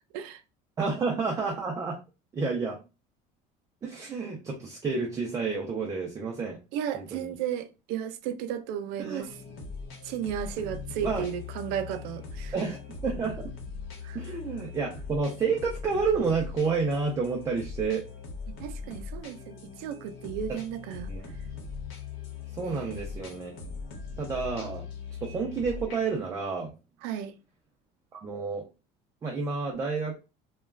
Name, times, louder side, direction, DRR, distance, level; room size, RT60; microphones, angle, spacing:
voice 1, 0.8-2.0 2.3-2.8 3.8-6.6 6.9-7.3 9.0-9.2 11.0-11.2 12.5-12.8 13.0-13.5 14.1-18.1 21.1-21.2 22.6-23.5 24.2-24.9 25.2-26.7 28.1-28.6 29.2-30.2, right 4 dB, 20° right, 0.4 m, -30 dB
voice 2, 6.7-9.4 10.0-12.5 14.0-14.2 18.5-21.1 22.6-23.1 27.0-27.3, right 9 dB, 75° right, 0.4 m, -34 dB
sound 1, 9.2-26.2, left 5 dB, 65° left, 0.7 m, -40 dB
2.3 x 2.3 x 3.1 m
cardioid pair, 160°, 17 cm